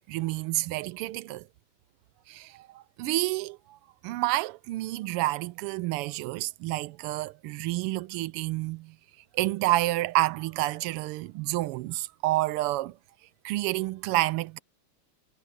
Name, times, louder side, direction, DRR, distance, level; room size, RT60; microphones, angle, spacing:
voice 1, 0.1-1.5 2.3-9.0 9.3-13.0 13.4-14.6, right 18 dB, 90° right, 1.5 m, -29 dB
omnidirectional pair, 2.4 m